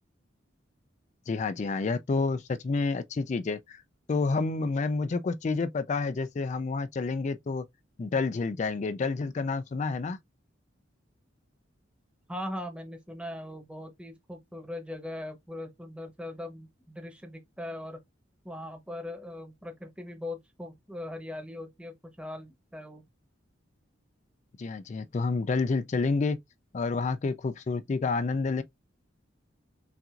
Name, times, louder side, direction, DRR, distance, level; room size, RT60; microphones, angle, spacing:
voice 1, 1.3-3.8 4.1-7.6 8.0-10.2 24.6-26.4 26.7-28.6, left 4 dB, 35° left, 0.3 m, -29 dB
voice 2, 12.3-18.0 18.4-23.0, left 1 dB, 5° right, 0.9 m, -40 dB
5.6 x 2.5 x 2.4 m
head